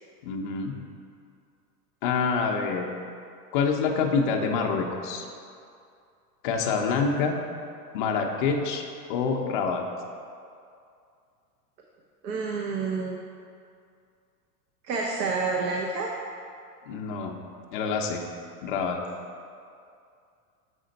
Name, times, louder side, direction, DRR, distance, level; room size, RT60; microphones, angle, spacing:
voice 1, 0.2-0.8 2.0-2.9 3.5-5.3 6.4-7.4 7.9-8.8 9.1-9.8 16.9-17.3 17.7-18.2 18.6-19.0, left 5 dB, 35° left, 1 dB, 0.4 m, -26 dB
voice 2, 12.2-13.2 14.8-16.1, right 4 dB, 80° right, -1 dB, 0.8 m, -28 dB
6.5 x 4.2 x 3.9 m, 2.4 s
supercardioid pair, 150°, 48 cm